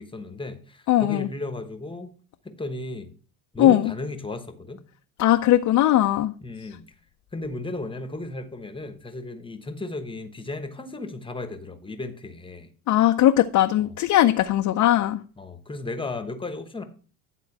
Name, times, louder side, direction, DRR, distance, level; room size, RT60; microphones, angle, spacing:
voice 1, 0.0-2.1 2.4-3.1 3.5-4.8 6.4-6.8 7.3-12.7 13.8-13.9 15.4-16.8, left 2 dB, 10° left, 1.0 m, -35 dB
voice 2, 0.9-1.3 3.6-3.9 5.2-6.3 12.9-15.2, left 13 dB, 45° left, 0.6 m, -19 dB
11.0 x 3.8 x 6.0 m
supercardioid pair, 100°, 42 cm